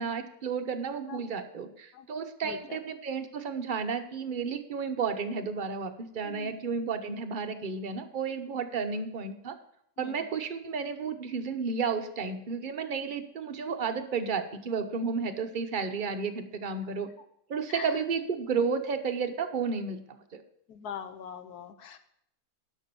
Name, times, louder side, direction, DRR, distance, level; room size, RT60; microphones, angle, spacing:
voice 1, 0.0-9.6 10.0-17.1 17.5-20.0 20.3-20.4, right 5 dB, 40° right, 7 dB, 0.7 m, -32 dB
voice 2, 2.4-2.8 6.2-6.6 10.0-10.3 17.7-18.0 20.7-22.0, left 7 dB, 70° left, 9 dB, 1.5 m, -42 dB
11.0 x 6.1 x 6.8 m, 0.73 s
omnidirectional pair, 1.8 m